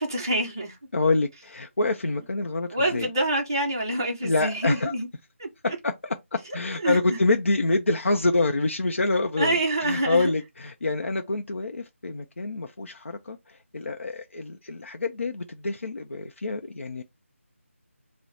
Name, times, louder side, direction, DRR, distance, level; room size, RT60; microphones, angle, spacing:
voice 1, 0.0-0.8 2.7-5.1 5.4-5.8 6.8-7.2 9.4-10.3, right 1 dB, 15° right, 0.5 m, -26 dB
voice 2, 0.9-3.1 4.2-4.9 5.6-6.1 6.5-9.6 9.8-17.0, left 2 dB, 60° left, 0.5 m, -26 dB
3.0 x 2.0 x 3.9 m
figure-of-eight pair, 175°, 8 cm